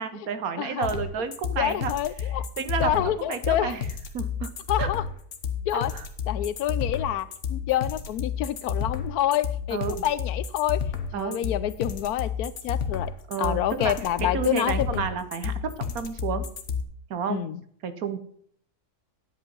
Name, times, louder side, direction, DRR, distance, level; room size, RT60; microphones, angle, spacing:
voice 1, 0.0-1.9 2.6-3.9 4.1-4.9 5.7-6.0 9.7-10.0 11.1-11.4 13.3-13.9 14.2-16.4 17.1-17.4 17.8-18.2, right 7 dB, 65° right, 11 dB, 1.3 m, -31 dB
voice 2, 0.6-0.9 1.6-2.4 2.8-3.7 4.7-5.0 5.7-5.9 6.3-10.8 11.1-13.1 13.4-15.0 17.3-17.6, left 12 dB, 75° left, 16 dB, 1.1 m, -27 dB
sound 1, 0.8-16.8, left 7 dB, 50° left, 1.2 m, -31 dB
9.7 x 8.0 x 5.3 m, 0.62 s
omnidirectional pair, 1.7 m